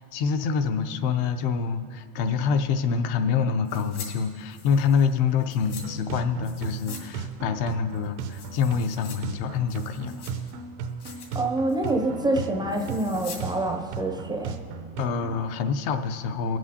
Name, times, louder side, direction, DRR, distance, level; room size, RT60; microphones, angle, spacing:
voice 1, 0.0-10.1 15.0-16.6, left 6 dB, 55° left, 8 dB, 0.7 m, -26 dB
sound 1, 3.6-4.1 4.4-5.8 6.4-7.0 7.3-7.4 7.9-9.2 9.5-10.5 10.9-11.4 11.7-12.0 12.7-13.4 13.7-13.8, left 6 dB, 75° left, 2.6 m, -44 dB
sound 2, 5.6-15.4, right 6 dB, 70° right, 0.8 m, -36 dB
voice 2, 11.3-14.5, right 2 dB, 10° right, 3 dB, 0.5 m, -26 dB
20.0 x 7.6 x 2.8 m, 2.4 s
supercardioid pair, 120°, 45 cm